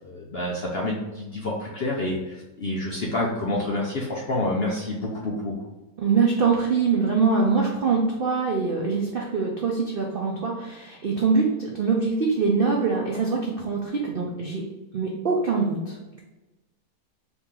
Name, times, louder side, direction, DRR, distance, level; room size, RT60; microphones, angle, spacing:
voice 1, 0.0-5.5, left 1 dB, 55° left, -3 dB, 0.6 m, -28 dB
voice 2, 6.0-14.6 14.9-16.2, right 4 dB, 75° right, -1 dB, 0.5 m, -24 dB
4.1 x 3.0 x 3.6 m, 1.1 s
omnidirectional pair, 1.8 m